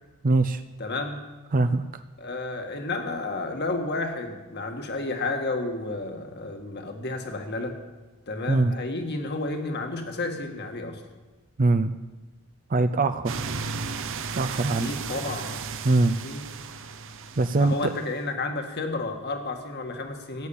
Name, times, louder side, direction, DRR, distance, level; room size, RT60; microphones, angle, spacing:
voice 1, 0.2-0.6 1.5-2.0 8.5-8.7 11.6-11.9 12.7-13.4 14.3-14.9 15.8-16.2 17.4-17.9, right 2 dB, 40° right, 10 dB, 0.5 m, -22 dB
voice 2, 0.8-1.2 2.2-7.8 8.3-11.0 14.6-15.6 16.2-16.4 17.6-20.5, left 2 dB, 50° left, 4 dB, 1.9 m, -31 dB
sound 1, 13.3-18.1, right 5 dB, 65° right, 0.9 m, -35 dB
14.5 x 8.6 x 8.6 m, 1.2 s
head